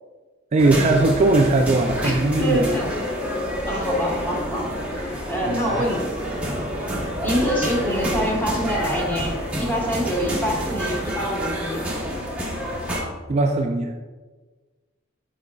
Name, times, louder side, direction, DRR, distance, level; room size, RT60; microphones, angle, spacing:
voice 1, 0.5-2.6 5.5-5.8 13.3-13.9, right 2 dB, 35° right, 3 dB, 0.3 m, -19 dB
sound 1, 0.6-13.0, equal, 5° right, 1.0 m, -28 dB
voice 2, 2.0-2.9 3.6-4.7 5.3-6.1 7.2-11.8, equal, 10° left, -3 dB, 1.4 m, -25 dB
8.1 x 5.2 x 2.4 m, 1.3 s
head